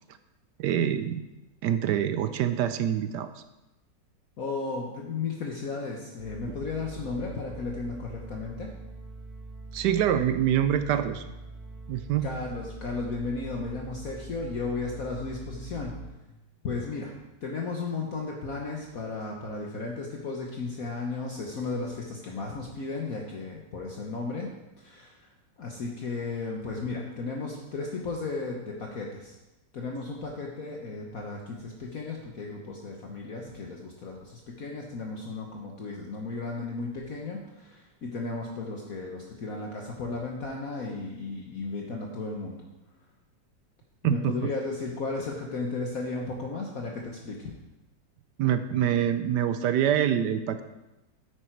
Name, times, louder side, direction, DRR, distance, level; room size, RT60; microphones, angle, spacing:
voice 1, 0.6-1.2 1.6-3.3 9.7-11.2 11.9-12.3 44.0-44.3 48.4-50.6, right 10 dB, 75° right, 10 dB, 1.2 m, -25 dB
voice 2, 4.4-8.7 12.2-16.0 16.6-24.5 24.8-25.3 25.6-29.3 29.7-42.6 44.0-47.5, left 3 dB, 55° left, -1 dB, 1.4 m, -34 dB
sound 1, 6.2-16.1, right 2 dB, 10° right, 1.4 m, -43 dB
9.3 x 8.5 x 4.6 m, 1.0 s
omnidirectional pair, 2.0 m